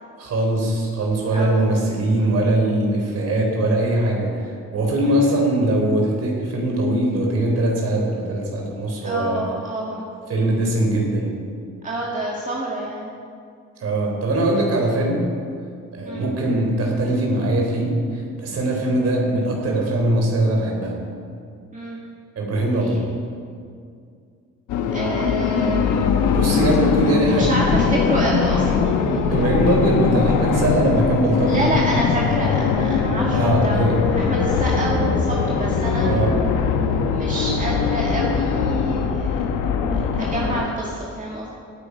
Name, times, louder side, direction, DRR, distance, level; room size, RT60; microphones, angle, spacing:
voice 1, 0.2-9.4 10.3-11.3 13.8-15.3 15.9-21.0 22.4-23.0 26.3-27.5 29.3-31.7 33.3-34.0 36.0-36.3, right 1 dB, 55° right, 0 dB, 3.9 m, -21 dB
voice 2, 1.3-1.7 2.2-2.3 5.0-5.2 9.0-10.1 11.8-13.1 16.1-16.3 21.7-22.0 22.8-23.0 24.9-26.1 27.3-29.5 31.5-33.8 34.1-36.3 37.1-39.4 39.9-41.5, right 1 dB, 25° right, -4 dB, 1.9 m, -28 dB
sound 1, 24.7-40.7, left 5 dB, 90° left, 1.1 m, -21 dB
17.0 x 9.1 x 5.1 m, 2.3 s
cardioid pair, 100°, 29 cm